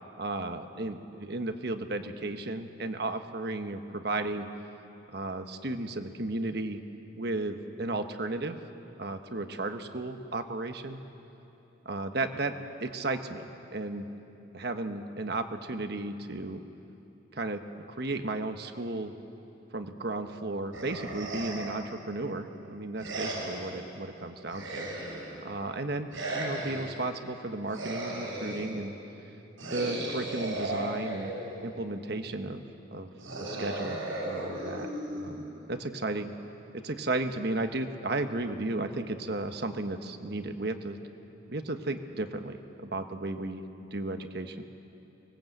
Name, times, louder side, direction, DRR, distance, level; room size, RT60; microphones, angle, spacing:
voice 1, 0.2-4.5 5.1-6.8 7.1-8.6 9.0-11.0 11.8-12.5 12.8-14.1 14.5-16.6 17.3-17.6 17.9-19.1 19.7-24.9 25.4-29.0 29.7-31.3 31.6-32.6 32.9-33.1 33.4-34.9 35.1-35.4 35.7-36.3 36.7-41.0 41.5-42.6 42.9-43.6 43.9-44.7, right 2 dB, 55° right, 7 dB, 1.2 m, -34 dB
sound 1, 20.7-21.8 23.0-23.8 24.5-25.4 26.1-27.0 27.7-28.8 29.6-31.6 33.2-35.6, right 1 dB, 85° right, 6.8 m, -36 dB
24.0 x 20.0 x 8.0 m, 3.0 s
head